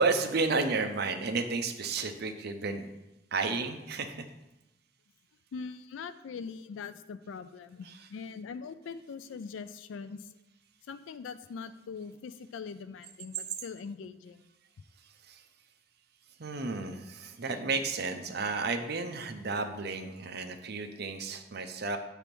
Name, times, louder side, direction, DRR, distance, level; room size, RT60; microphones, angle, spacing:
voice 1, 0.0-2.9 3.3-4.3 7.8-8.1 15.3-15.4 16.4-22.0, right 4 dB, 60° right, 7 dB, 0.7 m, -32 dB
voice 2, 5.5-10.3 10.9-14.4, left 5 dB, 85° left, 12 dB, 0.4 m, -42 dB
8.1 x 3.5 x 6.0 m, 0.96 s
head